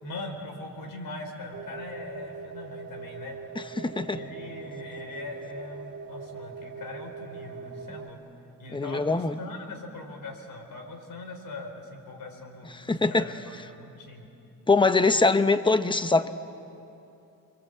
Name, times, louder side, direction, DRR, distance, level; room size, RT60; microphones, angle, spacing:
voice 1, 0.0-3.4 4.0-8.2 8.6-14.3 14.8-15.2, left 2 dB, 70° left, 3 dB, 4.5 m, -41 dB
sound 1, 1.5-8.1, right 5 dB, 45° right, 2.6 m, -41 dB
voice 2, 3.8-4.2 8.7-9.4 12.9-13.2 14.7-16.3, left 3 dB, 15° left, 10 dB, 0.7 m, -22 dB
29.0 x 23.5 x 8.2 m, 2.8 s
wide cardioid pair, 180°, 35 cm